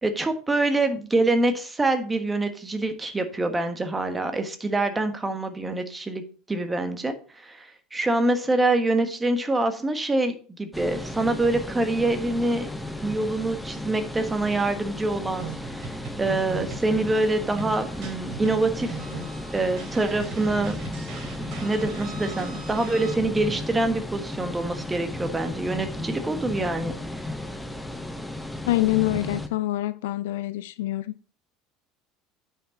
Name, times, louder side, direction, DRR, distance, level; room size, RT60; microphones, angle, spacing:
voice 1, 0.0-6.2 6.5-12.7 13.0-19.0 19.5-20.8 21.6-27.2, right 2 dB, 15° right, 1.4 m, -25 dB
sound 1, 10.7-29.5, left 1 dB, 5° left, 0.9 m, -35 dB
sound 2, 15.4-23.2, right 5 dB, 50° right, 2.5 m, -40 dB
voice 2, 28.7-31.1, left 17 dB, 65° left, 0.4 m, -25 dB
9.1 x 5.8 x 4.0 m
figure-of-eight pair, 70°, 0 cm